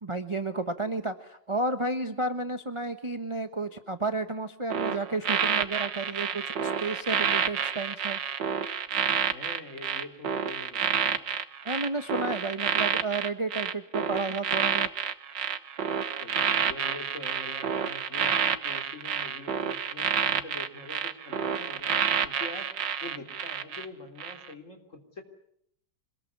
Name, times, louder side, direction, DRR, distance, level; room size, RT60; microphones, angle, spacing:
voice 1, 0.0-8.2 11.6-14.9, right 2 dB, 20° right, 8 dB, 0.9 m, -32 dB
sound 1, 4.7-23.9 24.2-24.5, right 8 dB, 70° right, 1.9 m, -29 dB
voice 2, 9.3-11.2 16.2-22.7 23.0-25.2, left 2 dB, 40° left, 5 dB, 3.8 m, -44 dB
26.0 x 20.5 x 9.6 m, 0.73 s
omnidirectional pair, 2.1 m